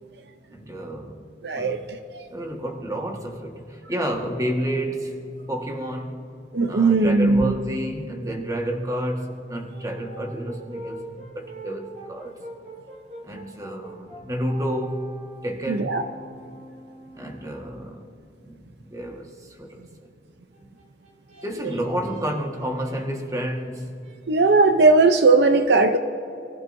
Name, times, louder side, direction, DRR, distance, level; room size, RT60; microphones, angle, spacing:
voice 1, 0.5-1.3 1.5-1.8 2.3-5.1 5.5-6.2 6.7-12.3 13.2-15.1 15.4-15.9 17.1-18.0 18.4-20.1 20.6-20.7 21.4-23.9, equal, 20° right, 1 dB, 1.5 m, -30 dB
voice 2, 1.4-2.2 6.5-7.5 15.7-16.0 24.3-26.0, right 3 dB, 65° right, 8 dB, 0.6 m, -18 dB
Brass instrument, 9.7-18.0 20.5-24.2, right 2 dB, 40° right, 2.9 m, -44 dB
27.5 x 15.0 x 2.7 m, 2.6 s
head